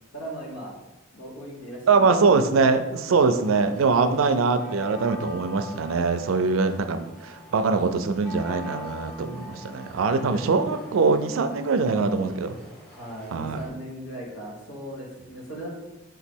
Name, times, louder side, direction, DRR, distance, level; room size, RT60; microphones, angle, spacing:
voice 1, 0.1-0.7 1.1-2.8 10.0-10.4 12.9-15.7, right 1 dB, 85° left, -2 dB, 1.4 m, -38 dB
voice 2, 1.9-12.6 13.3-13.6, right 4 dB, 80° right, 8 dB, 0.4 m, -23 dB
sound 1, 3.4-13.7, left 1 dB, 5° left, 0.9 m, -44 dB
3.8 x 3.0 x 4.4 m, 0.97 s
head